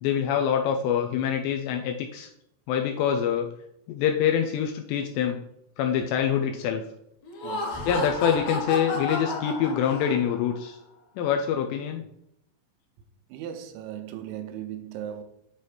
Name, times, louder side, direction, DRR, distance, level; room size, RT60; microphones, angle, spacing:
voice 1, 0.0-2.3 2.7-3.5 3.9-5.4 5.8-6.8 7.9-10.8 11.2-12.0, left 8 dB, 80° left, 2.6 m, -25 dB
Laughter, 7.2-10.5, left 3 dB, 60° left, 2.0 m, -32 dB
voice 2, 7.4-7.8 13.3-15.2, right 10 dB, 85° right, 3.0 m, -37 dB
9.2 x 3.3 x 4.2 m
omnidirectional pair, 5.3 m